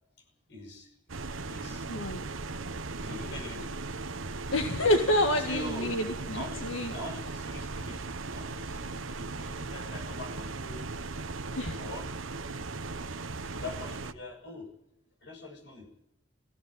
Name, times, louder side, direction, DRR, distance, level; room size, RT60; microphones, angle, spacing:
voice 1, 0.2-1.0 1.3-1.9 3.0-3.7 5.3-5.9 6.3-6.6 6.9-10.9 11.8-12.1 13.4-14.7 15.2-15.9, left 2 dB, 60° left, 2 dB, 7.0 m, -43 dB
sound 1, 1.1-14.1, right 3 dB, 90° right, 1.2 m, -38 dB
voice 2, 1.9-2.2 4.5-6.9 11.5-11.8, left 1 dB, 85° left, 5 dB, 1.8 m, -28 dB
18.0 x 16.0 x 9.2 m, 0.83 s
head